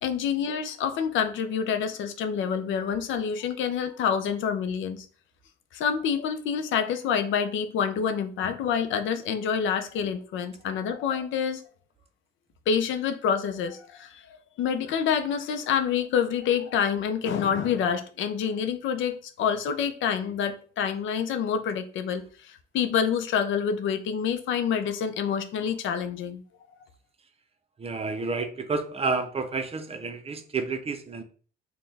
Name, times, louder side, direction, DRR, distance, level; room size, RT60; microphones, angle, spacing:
voice 1, 0.0-5.1 5.7-11.6 12.7-14.2 14.6-26.4, left 7 dB, 75° left, 0.5 m, -27 dB
voice 2, 27.8-31.2, right 4 dB, 30° right, 0.5 m, -30 dB
4.1 x 2.2 x 3.3 m
cardioid pair, 90°, 20 cm